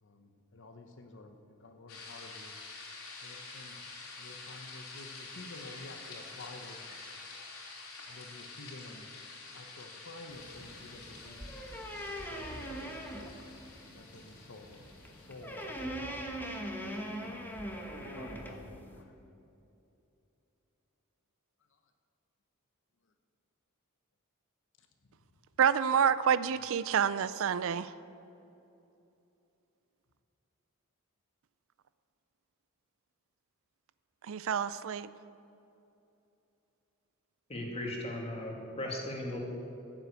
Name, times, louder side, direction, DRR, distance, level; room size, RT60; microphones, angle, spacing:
voice 1, 0.0-2.5 3.2-3.8 4.2-7.0 8.1-9.1 9.5-11.4 12.2-13.0 13.9-14.9 15.1-16.4 18.0-19.2 24.8-24.9 27.0-27.4 27.8-27.9, left 2 dB, 60° left, 5 dB, 0.9 m, -51 dB
sound 1, 1.9-16.0, left 3 dB, 85° left, 3.2 m, -48 dB
sound 2, 10.3-19.0, equal, 10° left, 1.3 m, -42 dB
voice 2, 25.6-27.9 34.3-35.1, right 7 dB, 65° right, 15 dB, 0.4 m, -28 dB
voice 3, 37.5-39.4, left 1 dB, 30° left, 0 dB, 2.3 m, -37 dB
14.5 x 7.5 x 8.1 m, 2.8 s
head